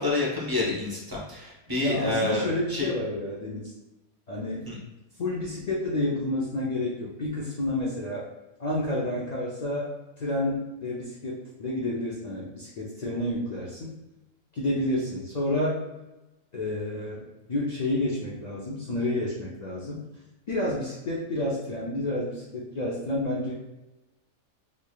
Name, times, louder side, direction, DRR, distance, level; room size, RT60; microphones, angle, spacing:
voice 1, 0.0-2.9 4.7-4.8, left 2 dB, 20° right, -5 dB, 0.6 m, -28 dB
voice 2, 1.8-3.7 4.3-4.7 5.2-8.2 8.6-9.9 10.2-13.9 14.5-15.8 16.5-17.2 17.5-20.0 20.5-23.5, left 1 dB, 75° left, -5 dB, 0.3 m, -29 dB
3.9 x 3.2 x 2.2 m, 1.0 s
omnidirectional pair, 1.6 m